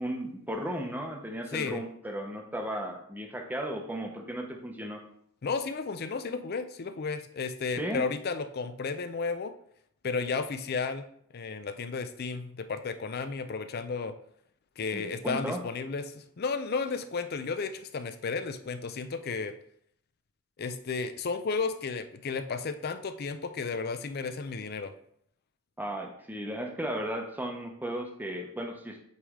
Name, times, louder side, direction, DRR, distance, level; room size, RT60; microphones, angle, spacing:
voice 1, 0.0-5.0 7.8-8.0 14.9-15.6 25.8-29.0, right 1 dB, 10° right, 2 dB, 0.8 m, -35 dB
voice 2, 1.5-1.8 5.4-9.5 10.0-11.1 11.3-14.1 14.8-19.6 20.6-24.9, left 4 dB, 45° left, 10 dB, 0.4 m, -33 dB
8.1 x 3.3 x 3.6 m, 0.67 s
head